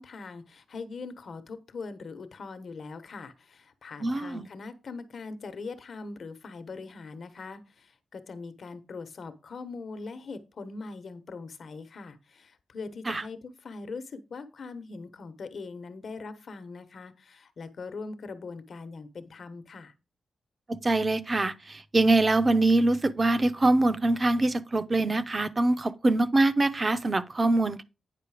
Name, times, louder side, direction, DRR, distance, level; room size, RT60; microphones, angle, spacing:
voice 1, 0.0-19.9, left 4 dB, 55° left, 1.1 m, -41 dB
voice 2, 4.0-4.5 13.1-13.2 20.7-27.8, right 2 dB, 25° right, 0.7 m, -24 dB
9.4 x 5.6 x 4.9 m
wide cardioid pair, 130°, 0 cm